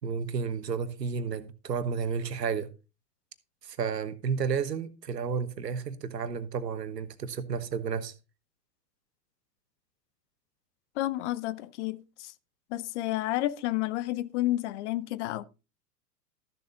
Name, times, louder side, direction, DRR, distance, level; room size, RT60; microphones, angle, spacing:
voice 1, 0.0-2.7 3.6-8.1, right 6 dB, 80° right, 1.3 m, -32 dB
voice 2, 11.0-12.3 12.7-15.4, left 16 dB, 45° left, 0.7 m, -30 dB
13.5 x 7.0 x 3.8 m
figure-of-eight pair, 95°, 48 cm